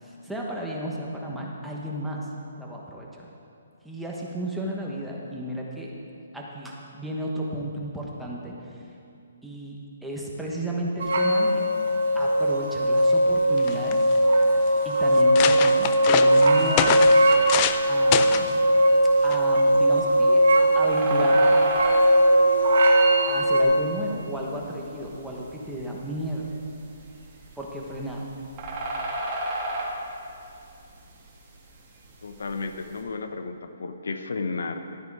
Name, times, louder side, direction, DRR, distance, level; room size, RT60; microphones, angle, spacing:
voice 1, 0.0-2.3 2.6-3.3 3.8-5.9 6.3-8.8 9.4-11.6 12.1-14.1 14.8-17.0 17.9-18.6 19.0-20.5 20.7-21.6 23.3-26.5 27.6-28.2, right 1 dB, ahead, -4 dB, 1.2 m, -33 dB
sound 1, 11.0-23.6, right 1 dB, 65° right, 1.8 m, -19 dB
sound 2, 13.3-13.4 13.6-14.2 14.8-14.9 15.1-17.8 18.1-18.5 19.3-19.6, left 10 dB, 25° left, 0.4 m, -26 dB
sound 3, 17.2-33.0, right 1 dB, 25° right, 2.2 m, -37 dB
voice 2, 32.2-35.0, left 3 dB, 80° left, 8 dB, 0.9 m, -33 dB
12.5 x 9.2 x 4.9 m, 2.5 s
hypercardioid pair, 160°, 0 cm